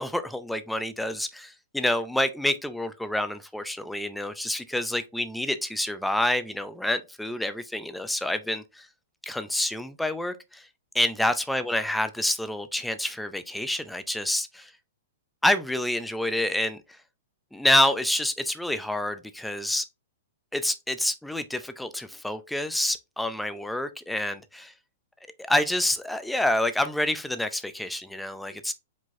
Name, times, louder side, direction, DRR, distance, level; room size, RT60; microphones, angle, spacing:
voice 1, 0.0-8.9 9.2-10.6 10.9-14.7 15.4-16.8 17.5-19.8 20.5-24.7 25.4-28.7, left 1 dB, ahead, 0.4 m, -27 dB
5.0 x 3.8 x 2.6 m
hypercardioid pair, 150°, 0 cm